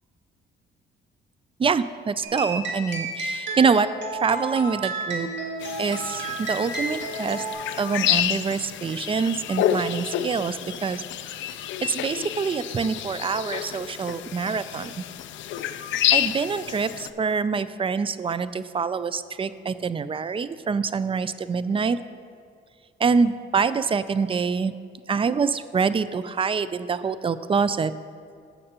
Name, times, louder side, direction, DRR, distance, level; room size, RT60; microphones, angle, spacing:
voice 1, 1.6-3.9 4.2-5.3 5.8-7.4 7.8-11.0 11.8-15.0 16.1-22.0 23.0-24.7 25.1-27.9, right 5 dB, 25° right, 14 dB, 0.4 m, -25 dB
sound 1, 2.2-7.5, right 2 dB, 65° right, 2.2 m, -31 dB
sound 2, 5.6-17.1, left 11 dB, 75° left, 0.5 m, -29 dB
16.5 x 6.5 x 2.9 m, 2.4 s
cardioid pair, 90°, 20 cm